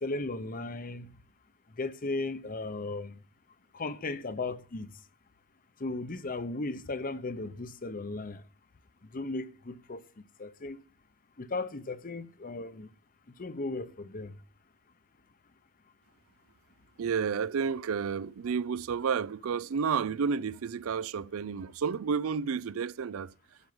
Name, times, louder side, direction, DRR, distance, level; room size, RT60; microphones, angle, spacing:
voice 1, 0.0-1.1 1.8-3.2 3.7-4.9 5.8-8.4 9.1-10.8 11.4-12.9 13.4-14.3, left 2 dB, 40° left, 0.8 m, -36 dB
voice 2, 17.0-23.3, right 6 dB, 75° right, 0.4 m, -31 dB
12.5 x 5.4 x 7.7 m
head